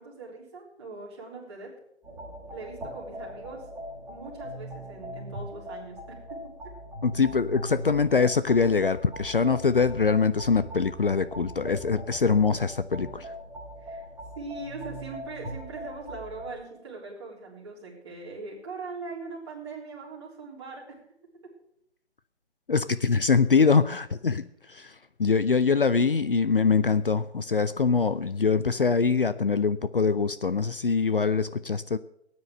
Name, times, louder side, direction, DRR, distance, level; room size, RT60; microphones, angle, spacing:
voice 1, 0.0-1.7 2.5-3.7 4.1-6.5 13.8-14.0 14.4-21.0, right 3 dB, 25° right, -4 dB, 3.7 m, -41 dB
sound 1, 2.0-16.5, right 1 dB, 5° right, 1.5 m, -40 dB
voice 2, 7.0-13.3 22.7-32.0, left 5 dB, 50° left, 14 dB, 0.6 m, -24 dB
15.5 x 9.6 x 6.4 m, 0.76 s
figure-of-eight pair, 165°, 34 cm